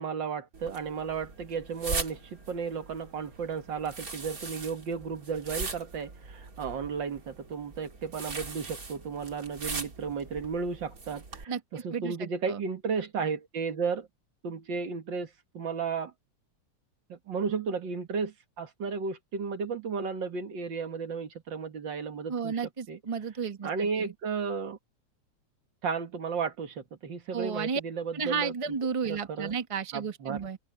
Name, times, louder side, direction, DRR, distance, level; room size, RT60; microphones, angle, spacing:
voice 1, 0.0-14.1 14.4-16.1 17.1-22.6 22.9-23.0 23.6-24.8 25.8-28.5 29.0-29.6 29.9-30.5, right 5 dB, 80° right, 2.4 m, -34 dB
sound 1, 0.5-11.4, right 3 dB, 50° right, 3.2 m, -40 dB
voice 2, 11.9-12.6 22.3-24.1 27.3-27.8 28.1-30.6, right 6 dB, 20° right, 1.0 m, -33 dB
omnidirectional pair, 2.0 m